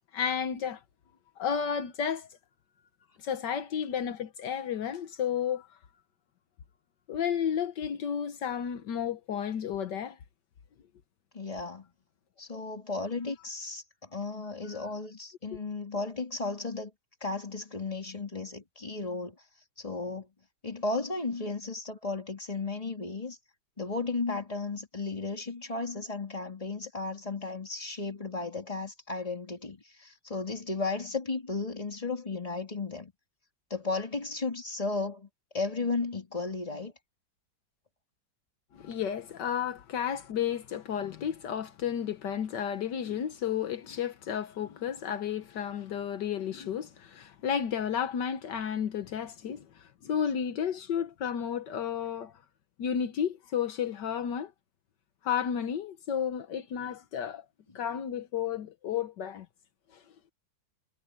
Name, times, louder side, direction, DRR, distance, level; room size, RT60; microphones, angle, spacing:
voice 1, 0.1-0.8 1.4-2.3 3.2-5.7 7.1-10.2 38.7-52.3 52.8-54.5 55.2-57.5 57.8-59.5 59.9-60.0, left 8 dB, 75° left, 1.7 m, -32 dB
voice 2, 11.3-11.9 12.4-13.8 14.1-16.9 17.2-19.4 19.8-20.3 20.6-23.4 23.8-33.1 33.7-35.3 35.5-36.9, left 3 dB, 20° left, 2.9 m, -34 dB
omnidirectional pair, 1.9 m